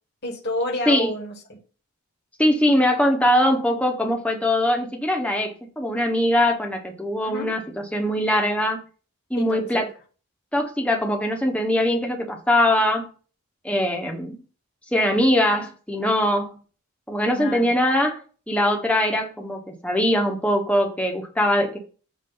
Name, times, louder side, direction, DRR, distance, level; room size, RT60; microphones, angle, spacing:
voice 1, 0.2-1.6 7.2-7.5 9.4-9.6 17.3-17.7, left 1 dB, 45° left, -1 dB, 1.2 m, -29 dB
voice 2, 2.4-8.8 9.3-9.9 10.5-13.1 13.6-14.4 14.9-16.6 17.1-18.2 18.5-21.8, left 1 dB, 5° left, 2 dB, 0.8 m, -22 dB
7.6 x 2.6 x 5.4 m, 0.39 s
head